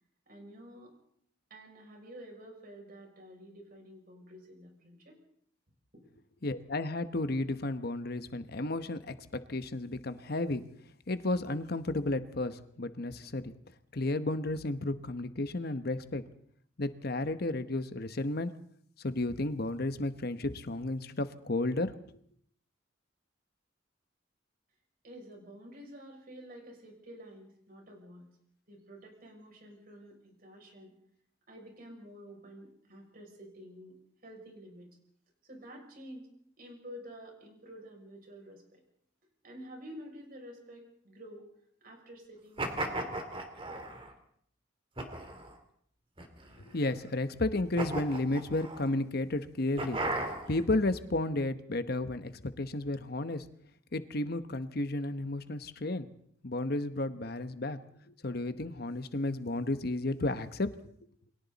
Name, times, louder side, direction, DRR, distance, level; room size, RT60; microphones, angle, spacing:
voice 1, 0.3-0.9 1.5-5.2 5.9-6.0 25.0-28.4 28.7-30.9 31.5-35.0 35.4-36.3 36.6-38.8 39.4-41.5 41.8-43.2, equal, 50° right, 1 dB, 6.5 m, -50 dB
voice 2, 6.4-9.1 9.5-10.6 11.1-13.5 13.9-16.2 16.8-18.5 19.0-21.9 46.7-50.0 50.5-53.4 53.9-56.1 56.4-57.8 58.1-60.7, left 2 dB, 55° left, 11 dB, 1.1 m, -32 dB
sound 1, 42.6-44.1 45.0-45.5 46.2-46.9 47.8-48.9 49.8-50.6, right 2 dB, 30° right, 2.9 m, -36 dB
29.0 x 22.5 x 4.1 m, 0.64 s
head